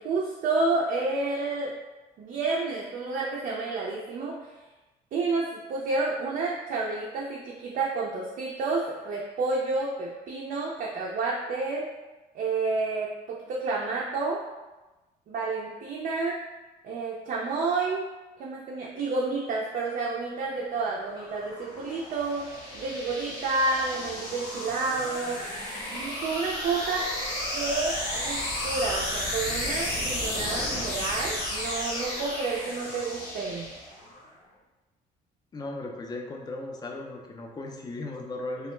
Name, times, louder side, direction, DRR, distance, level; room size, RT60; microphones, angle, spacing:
voice 1, 0.0-1.7 2.2-4.5 5.1-11.9 12.3-14.4 15.3-16.4 16.8-18.1 18.4-25.4 25.9-27.1 27.5-33.7, right 3 dB, 50° right, -3 dB, 0.4 m, -30 dB
sound 1, 20.7-34.2, left 1 dB, 80° left, 0.9 m, -33 dB
voice 2, 35.5-38.7, left 2 dB, 25° left, 1 dB, 0.4 m, -36 dB
2.3 x 2.0 x 3.1 m, 1.1 s
cardioid pair, 110°, 17 cm